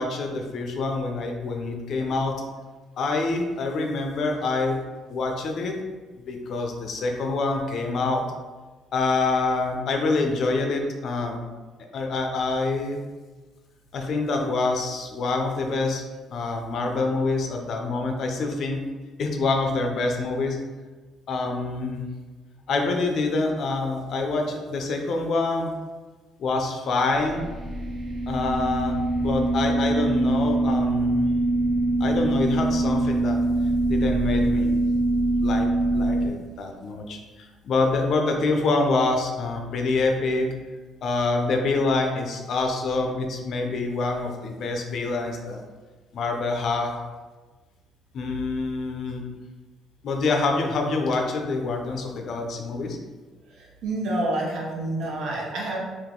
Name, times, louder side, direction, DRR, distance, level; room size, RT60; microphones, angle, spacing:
voice 1, 0.0-2.4 3.0-4.8 5.1-5.8 6.2-8.2 8.9-11.4 11.9-13.0 13.9-16.0 16.3-18.8 19.2-20.6 21.3-22.1 22.7-25.7 26.4-27.4 28.3-31.3 32.0-33.4 33.9-34.8 35.4-40.5 41.0-45.6 46.1-47.0 48.1-49.2 50.0-53.0, left 3 dB, 50° left, 2 dB, 0.5 m, -26 dB
sound 1, 27.1-36.3, right 2 dB, 40° right, 0.5 m, -23 dB
voice 2, 53.5-55.8, right 2 dB, 70° right, -3 dB, 1.0 m, -28 dB
3.6 x 2.6 x 3.6 m, 1.3 s
cardioid pair, 145°, 0 cm